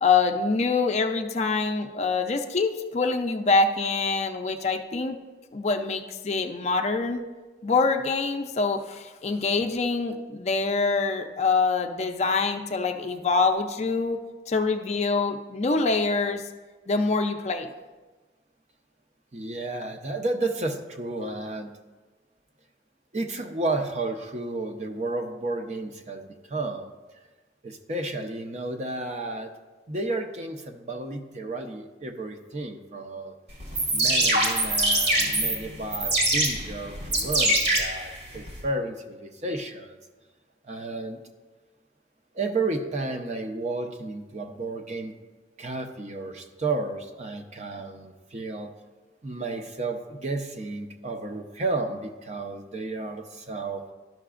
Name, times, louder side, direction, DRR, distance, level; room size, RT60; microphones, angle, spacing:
voice 1, 0.0-5.2 5.5-7.3 7.6-14.2 14.5-16.4 16.9-17.7, left 4 dB, 40° left, 5 dB, 0.4 m, -25 dB
voice 2, 19.3-21.7 23.1-26.9 27.6-29.5 29.9-33.3 33.9-40.0 40.6-41.2 42.3-45.2 45.6-48.7 49.2-53.8, right 2 dB, 40° right, 5 dB, 0.6 m, -32 dB
sound 1, 33.6-38.6, right 1 dB, 65° right, 1.8 m, -24 dB
12.0 x 5.8 x 2.4 m, 1.2 s
head